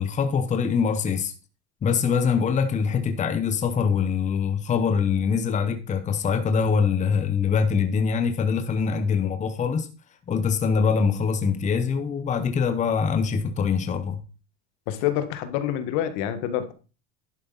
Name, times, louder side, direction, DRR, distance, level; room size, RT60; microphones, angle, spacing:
voice 1, 0.0-1.3 1.8-9.9 10.3-14.2, left 6 dB, 20° left, 6 dB, 1.0 m, -23 dB
voice 2, 14.9-16.7, left 11 dB, 65° left, 10 dB, 1.7 m, -27 dB
11.5 x 8.1 x 4.1 m, 0.34 s
supercardioid pair, 140°, 33 cm